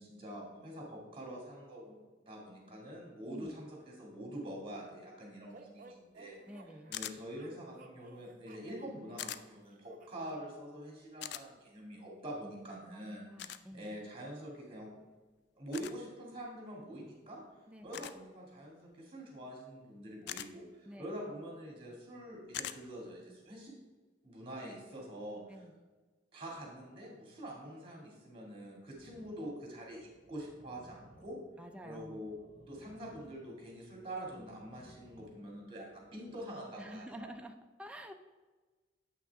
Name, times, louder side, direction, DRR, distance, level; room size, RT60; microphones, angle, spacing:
voice 1, 0.0-6.4 6.9-13.2 13.7-14.9 15.6-17.4 17.8-23.7 24.2-25.6 26.3-31.4 31.8-37.3, right 1 dB, 30° right, -2 dB, 2.3 m, -45 dB
voice 2, 3.3-3.6 6.5-6.9 12.9-13.0 13.3-13.9 17.7-18.0 20.9-21.0 25.5-25.7 31.6-32.2 36.8-38.1, equal, 5° right, 4 dB, 0.4 m, -49 dB
sound 1, 5.5-10.3, right 3 dB, 45° right, 0.7 m, -57 dB
sound 2, 6.9-7.2 9.2-9.4 11.2-11.4 13.4-13.6 15.7-16.0 17.9-18.2 20.3-20.5 22.5-22.8, left 11 dB, 65° left, 0.3 m, -41 dB
sound 3, 28.9-36.9, equal, 35° left, 1.2 m, -62 dB
8.0 x 5.9 x 3.5 m, 1.3 s
head